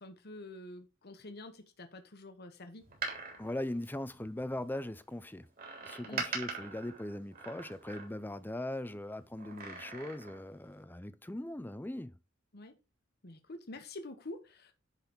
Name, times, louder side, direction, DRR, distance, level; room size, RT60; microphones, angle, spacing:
voice 1, 0.0-2.9 6.0-6.3 12.5-12.8 13.2-14.7, left 2 dB, 50° left, 1.2 m, -47 dB
Door, 2.8-4.6 5.6-8.4 9.4-10.5 10.8-10.9, right 4 dB, 45° right, 3.6 m, -42 dB
voice 2, 3.4-5.5 5.8-12.1, left 1 dB, 10° left, 0.5 m, -40 dB
10.5 x 4.1 x 5.2 m
head